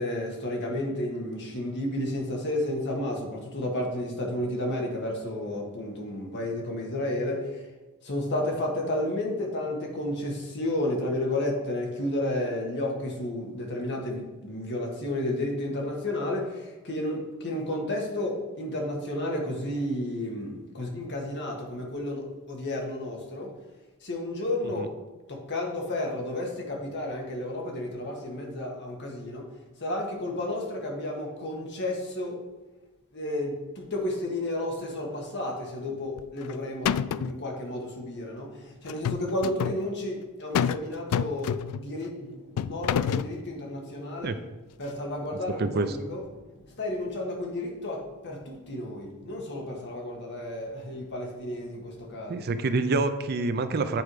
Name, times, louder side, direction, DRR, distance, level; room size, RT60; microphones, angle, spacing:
voice 1, 0.0-7.7 8.0-23.6 24.0-24.9 25.3-29.5 29.8-32.4 33.1-44.4 44.8-46.2 46.5-52.5, left 1 dB, 50° left, 0 dB, 1.6 m, -32 dB
sound 1, 36.2-36.5 36.9-37.4 38.9-39.8 40.6-40.8 41.1-41.9 42.6-43.3, left 8 dB, 80° left, 0.3 m, -27 dB
voice 2, 52.3-54.0, right 3 dB, 45° right, 10 dB, 0.5 m, -26 dB
8.8 x 4.6 x 4.8 m, 1.2 s
head